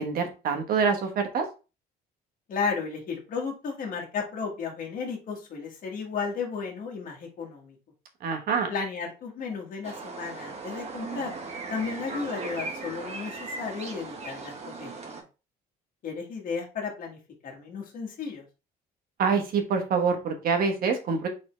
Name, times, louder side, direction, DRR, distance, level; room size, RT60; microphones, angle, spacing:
voice 1, 0.0-1.4 8.2-8.7 19.2-21.3, right 5 dB, 60° right, 4 dB, 1.3 m, -26 dB
voice 2, 2.5-7.8 8.7-11.3 11.7-14.9 16.0-18.4, left 5 dB, 55° left, 0 dB, 1.6 m, -34 dB
sound 1, 9.8-15.2, right 3 dB, 40° right, 1.2 m, -38 dB
4.0 x 3.8 x 3.2 m, 0.31 s
cardioid pair, 110°, 17 cm